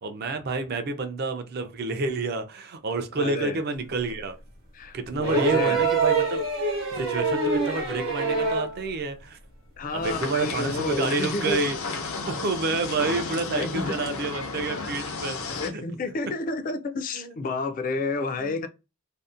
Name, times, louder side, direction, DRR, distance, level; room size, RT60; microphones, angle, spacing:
voice 1, 0.0-4.3 4.9-6.4 7.0-9.4 9.9-11.8 12.3-15.8 17.1-17.4 18.4-18.6, right 3 dB, 45° right, 0.4 m, -29 dB
voice 2, 3.2-3.6 4.7-5.8 9.8-11.6 13.5-14.1 15.4-18.7, left 3 dB, 40° left, 0.3 m, -30 dB
sound 1, 5.2-8.8 10.1-10.2, right 4 dB, 65° right, 0.9 m, -25 dB
sound 2, 10.0-15.7, left 4 dB, 80° left, 0.6 m, -33 dB
2.6 x 2.1 x 2.4 m
head